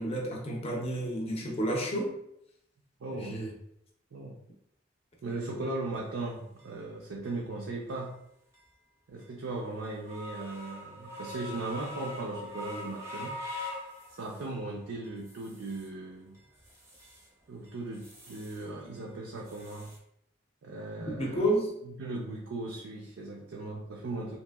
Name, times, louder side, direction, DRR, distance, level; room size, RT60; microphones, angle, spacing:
voice 1, 0.0-2.1 3.2-3.5 21.1-21.7, right 1 dB, 30° left, 0 dB, 0.5 m, -30 dB
voice 2, 3.0-3.4 4.1-4.4 5.2-8.2 9.1-13.4 14.2-16.4 17.5-19.9 20.6-21.5 21.8-24.4, right 2 dB, 90° right, -2 dB, 0.4 m, -38 dB
sound 1, 5.3-5.4 5.9-6.0 6.6-6.7 7.2-7.4 7.9-8.1 8.5-8.7 9.2-9.3 9.8-14.6 15.0-15.9 16.3-17.3 17.6-18.7 18.9-20.0, left 1 dB, 15° right, 0.5 m, -44 dB
2.9 x 2.5 x 2.2 m, 0.77 s
head